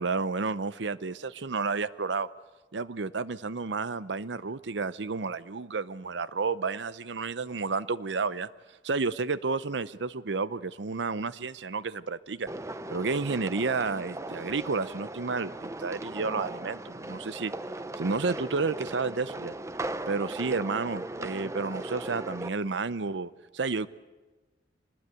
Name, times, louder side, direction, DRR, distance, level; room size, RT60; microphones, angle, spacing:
voice 1, 0.0-2.3 2.7-8.5 8.8-12.5 12.9-17.5 18.0-19.5 20.1-23.9, right 4 dB, 70° right, 16 dB, 0.7 m, -31 dB
sound 1, 12.5-22.5, right 2 dB, 15° right, 0.7 m, -38 dB
24.5 x 20.0 x 8.3 m, 1.2 s
head